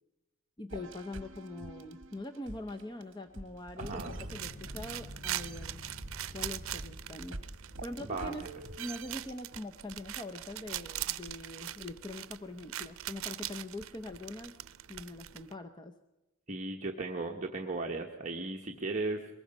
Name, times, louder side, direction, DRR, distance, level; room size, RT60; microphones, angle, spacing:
voice 1, 0.6-5.8 6.3-7.4 7.8-8.4 8.8-14.5 14.9-15.9, left 2 dB, 20° left, 6 dB, 0.7 m, -43 dB
sound 1, 0.7-4.9 5.2-9.6, right 3 dB, 60° right, 1.2 m, -46 dB
sound 2, 3.8-9.3, equal, 50° left, 4.3 m, -49 dB
voice 2, 3.8-4.1 8.0-8.5 16.5-19.3, right 3 dB, 35° right, 0 dB, 1.2 m, -36 dB
sound 3, 3.9-15.5, right 12 dB, 80° right, 0.6 m, -42 dB
23.0 x 21.0 x 5.4 m, 0.99 s
head